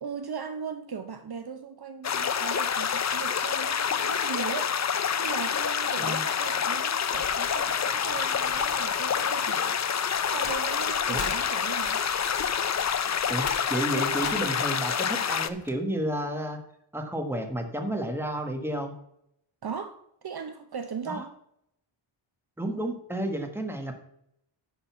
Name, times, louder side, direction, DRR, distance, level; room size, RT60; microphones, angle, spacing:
voice 1, 0.0-9.8 10.3-12.0 19.6-21.3, right 6 dB, 50° right, 8 dB, 0.8 m, -38 dB
sound 1, 2.0-15.5, left 7 dB, 35° left, 0.5 m, -27 dB
sound 2, 7.1-9.4 9.6-15.7, left 5 dB, 80° left, 1.4 m, -41 dB
voice 2, 13.3-16.6 16.9-18.9 21.1-21.2 22.6-23.9, right 1 dB, 5° right, 4 dB, 1.4 m, -31 dB
10.5 x 4.1 x 7.0 m, 0.74 s
wide cardioid pair, 135°, 49 cm